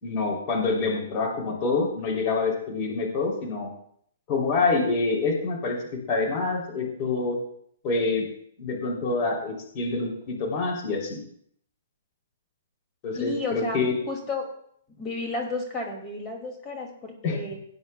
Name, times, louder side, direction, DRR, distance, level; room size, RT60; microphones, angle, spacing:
voice 1, 0.0-3.7 4.3-7.4 7.8-8.2 8.6-11.2 13.0-13.9 17.2-17.4, left 3 dB, 35° left, -2 dB, 3.1 m, -26 dB
voice 2, 13.2-13.8 14.1-14.5 15.0-17.5, left 3 dB, 20° left, 1 dB, 2.3 m, -32 dB
17.5 x 9.3 x 2.3 m, 0.66 s
hypercardioid pair, 145°, 0 cm